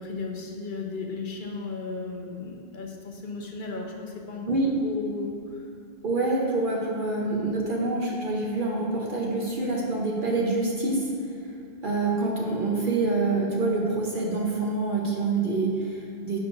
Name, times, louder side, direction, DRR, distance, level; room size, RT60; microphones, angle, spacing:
voice 1, 0.0-4.5 4.8-5.7, left 4 dB, 55° left, 1 dB, 1.0 m, -35 dB
voice 2, 6.0-11.1 11.8-16.4, right 3 dB, 55° right, -3 dB, 1.0 m, -26 dB
9.6 x 6.4 x 2.6 m, 2.5 s
omnidirectional pair, 1.1 m